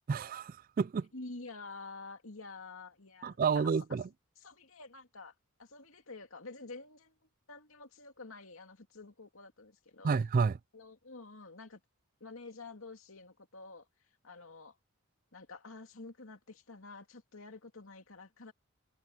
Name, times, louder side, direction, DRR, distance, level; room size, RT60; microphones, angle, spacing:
voice 1, 0.1-1.1 3.2-4.0 10.0-10.6, right 5 dB, 40° right, 0.3 m, -30 dB
voice 2, 1.1-3.7 4.4-7.1 7.5-10.1 10.7-11.8 12.2-13.9 14.2-14.8 15.3-18.5, left 3 dB, 70° left, 2.7 m, -49 dB
head